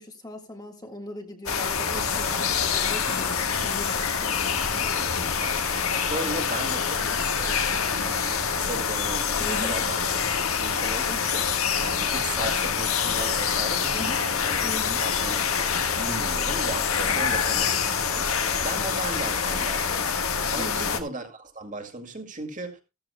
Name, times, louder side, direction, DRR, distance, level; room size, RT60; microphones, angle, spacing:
voice 1, 0.0-5.5 9.4-9.7 13.9-14.2 14.6-15.0 17.0-17.3 20.6-20.9, left 1 dB, 20° left, 1.6 m, -39 dB
sound 1, 1.5-21.0, left 6 dB, 75° left, 1.6 m, -26 dB
voice 2, 5.4-10.1 10.6-14.7 15.0-22.8, right 2 dB, 35° right, 2.1 m, -37 dB
15.0 x 14.0 x 2.2 m
head